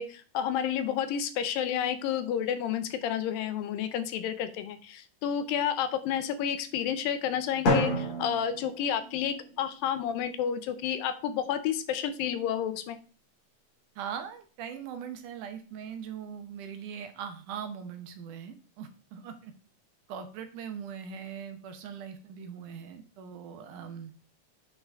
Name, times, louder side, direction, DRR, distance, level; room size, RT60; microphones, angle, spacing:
voice 1, 0.0-13.0, left 9 dB, 80° left, 11 dB, 2.5 m, -30 dB
Drum, 7.7-9.6, left 1 dB, 45° left, 2.4 m, -29 dB
voice 2, 14.0-19.5 20.1-24.1, right 7 dB, 70° right, 7 dB, 2.3 m, -41 dB
9.0 x 5.8 x 3.6 m, 0.37 s
omnidirectional pair, 4.0 m